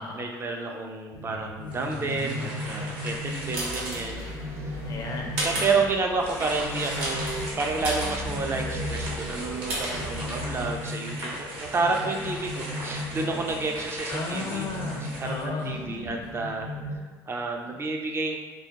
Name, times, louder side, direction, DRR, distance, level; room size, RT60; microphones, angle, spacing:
voice 1, 0.2-4.2 4.5-4.7 5.4-14.7 15.0-16.7 17.3-18.4, right 3 dB, 30° right, 2 dB, 0.4 m, -30 dB
sound 1, 1.1-17.0, left 1 dB, 80° left, 0.7 m, -37 dB
sound 2, 1.7-4.2 4.8-4.9 6.1-15.9, right 1 dB, 60° right, 0.9 m, -38 dB
sound 3, 3.0-10.8, right 1 dB, 85° right, 0.8 m, -34 dB
voice 2, 4.9-5.8 14.1-15.7, left 3 dB, 45° left, 0 dB, 0.5 m, -35 dB
2.3 x 2.1 x 2.8 m, 1.2 s
supercardioid pair, 85°, 9 cm